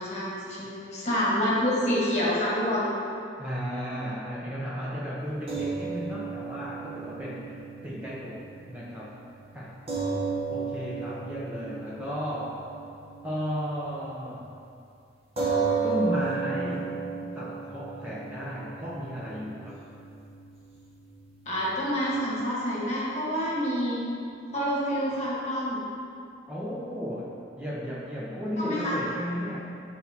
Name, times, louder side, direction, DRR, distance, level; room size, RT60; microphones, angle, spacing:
voice 1, 0.0-2.9 21.5-24.0 24.5-25.8 28.6-28.9, equal, 40° left, -6 dB, 1.3 m, -27 dB
voice 2, 3.4-9.2 9.5-10.1 10.5-12.7 13.2-14.5 15.8-17.0 17.3-19.9 26.5-29.7, equal, 10° right, -7 dB, 0.5 m, -34 dB
sound 1, 5.5-14.0 14.3-14.5 15.4-21.9, right 5 dB, 35° right, 1.0 m, -34 dB
7.8 x 4.5 x 2.8 m, 2.4 s
head